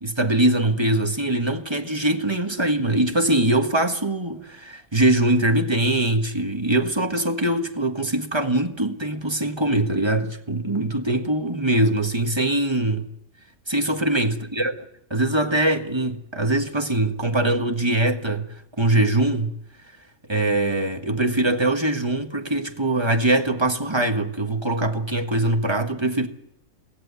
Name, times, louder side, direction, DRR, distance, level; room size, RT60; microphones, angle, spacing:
voice 1, 0.0-13.1 13.7-18.5 18.8-19.5 20.3-26.3, right 1 dB, 20° right, 1.4 m, -22 dB
22.5 x 18.0 x 8.2 m
omnidirectional pair, 1.6 m